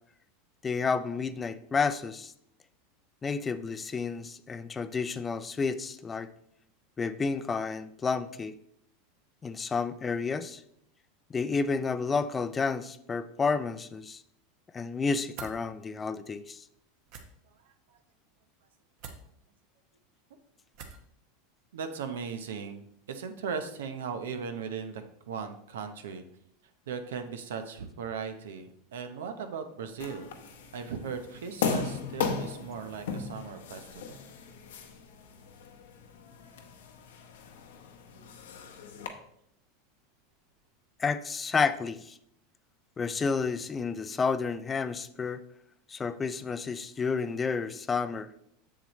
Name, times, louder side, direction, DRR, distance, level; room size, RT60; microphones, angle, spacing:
voice 1, 0.6-2.3 3.2-6.3 7.0-8.6 9.4-10.6 11.3-14.2 14.7-16.6 41.0-42.2 43.0-45.4 45.9-48.3, left 5 dB, 20° left, 13 dB, 0.4 m, -30 dB
sound 1, 15.3-15.6 17.1-17.3 19.0-19.2 20.7-21.1, right 5 dB, 60° right, 1.1 m, -43 dB
voice 2, 17.5-18.0 21.7-26.2 26.9-34.2, right 6 dB, 85° right, 7 dB, 0.9 m, -38 dB
sound 2, 30.0-39.1, left 5 dB, 85° left, 1.0 m, -37 dB
7.4 x 6.8 x 3.1 m, 0.71 s
supercardioid pair, 115°, 0 cm